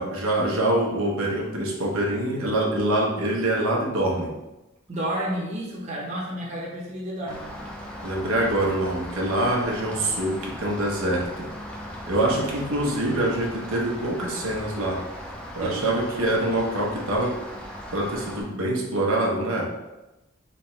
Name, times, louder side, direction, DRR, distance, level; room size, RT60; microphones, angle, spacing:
voice 1, 0.0-4.3 8.0-11.5 12.1-15.0 15.5-17.3 17.9-19.7, right 1 dB, 90° right, -3 dB, 1.0 m, -25 dB
voice 2, 4.9-7.6 15.6-15.9, right 1 dB, 35° right, -4 dB, 0.9 m, -31 dB
Rain, 7.3-18.4, equal, 5° left, 0.6 m, -38 dB
3.4 x 3.1 x 4.4 m, 1.0 s
head